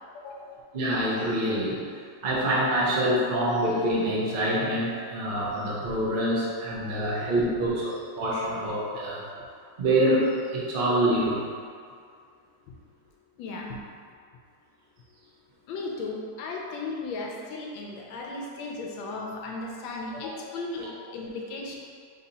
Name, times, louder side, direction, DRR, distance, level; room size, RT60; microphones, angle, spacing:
voice 1, 0.1-0.5 13.4-13.8 15.7-21.8, left 3 dB, 85° left, 0 dB, 1.4 m, -36 dB
voice 2, 0.7-1.8 2.2-9.2 9.8-11.5 20.8-20.9, right 1 dB, 65° right, -6 dB, 0.5 m, -26 dB
3.9 x 2.8 x 4.0 m, 2.2 s
omnidirectional pair, 2.1 m